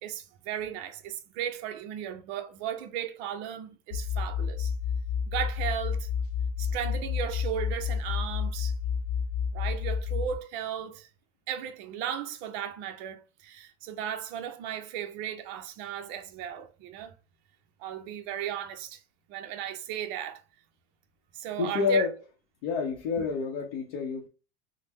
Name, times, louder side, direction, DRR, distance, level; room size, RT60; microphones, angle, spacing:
voice 1, 0.0-4.7 5.3-6.1 6.6-8.7 9.5-11.1 11.5-17.1 17.8-19.0 19.3-20.4 21.3-22.1, right 9 dB, 45° right, 0.5 m, -36 dB
sound 1, 3.9-10.3, left 7 dB, 35° left, 0.4 m, -30 dB
voice 2, 21.6-22.2 22.6-24.3, left 5 dB, 65° left, 0.7 m, -28 dB
3.5 x 2.0 x 2.9 m
supercardioid pair, 165°, 31 cm